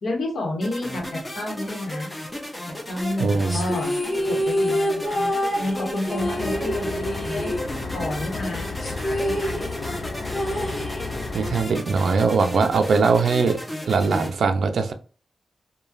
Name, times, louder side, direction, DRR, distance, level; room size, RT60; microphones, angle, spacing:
voice 1, 0.0-2.1 2.9-3.9 4.3-5.3 5.6-7.5 7.9-10.1, left 1 dB, 70° left, 1.1 m, -30 dB
sound 1, 0.6-14.3, left 1 dB, 15° left, 0.6 m, -35 dB
voice 2, 3.2-3.6 11.3-13.6 13.9-14.9, right 4 dB, 75° right, 0.4 m, -21 dB
sound 2, 3.5-8.2 8.4-8.5 8.8-11.5, equal, 35° left, 1.3 m, -27 dB
sound 3, 6.2-11.6, left 3 dB, 85° left, 0.6 m, -33 dB
3.0 x 2.2 x 2.4 m
wide cardioid pair, 165°, 0 cm